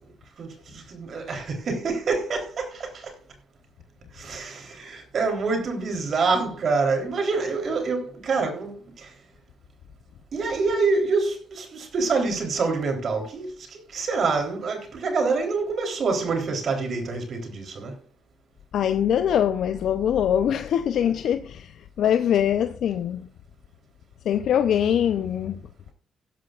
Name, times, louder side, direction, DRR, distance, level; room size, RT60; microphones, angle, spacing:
voice 1, 0.0-3.2 4.1-9.2 10.3-18.0, right 4 dB, 60° right, 3.7 m, -26 dB
voice 2, 18.7-23.3 24.3-25.6, left 9 dB, 75° left, 0.7 m, -23 dB
15.5 x 11.5 x 2.5 m
supercardioid pair, 65°, 0 cm